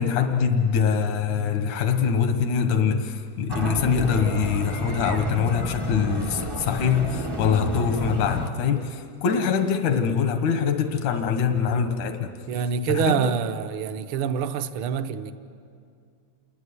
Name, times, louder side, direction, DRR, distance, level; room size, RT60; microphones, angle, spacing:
voice 1, 0.0-12.3 12.9-13.3, left 6 dB, 85° left, 2.7 m, -23 dB
sound 1, 3.5-8.5, left 1 dB, 40° right, 0.3 m, -31 dB
voice 2, 12.5-15.3, right 8 dB, 60° right, 1.4 m, -26 dB
28.5 x 21.5 x 9.6 m
omnidirectional pair, 3.3 m